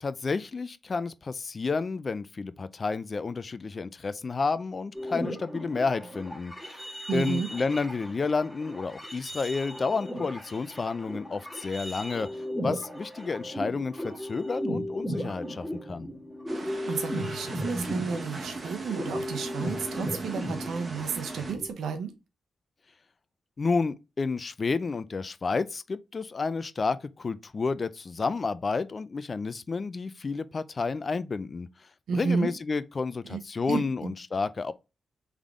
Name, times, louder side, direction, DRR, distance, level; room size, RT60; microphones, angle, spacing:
voice 1, 0.0-12.3 12.6-16.1 23.6-31.7 32.1-34.7, left 4 dB, 40° left, 0.4 m, -30 dB
sound 1, 4.9-21.1 21.4-21.7, equal, ahead, 1.3 m, -36 dB
voice 2, 7.1-7.5 16.5-22.1 32.1-32.5 33.2-33.4 33.7-34.1, right 5 dB, 85° right, 0.8 m, -32 dB
sound 2, 16.5-21.5, right 2 dB, 40° right, 1.1 m, -39 dB
3.6 x 3.5 x 3.6 m
cardioid pair, 75°, 0 cm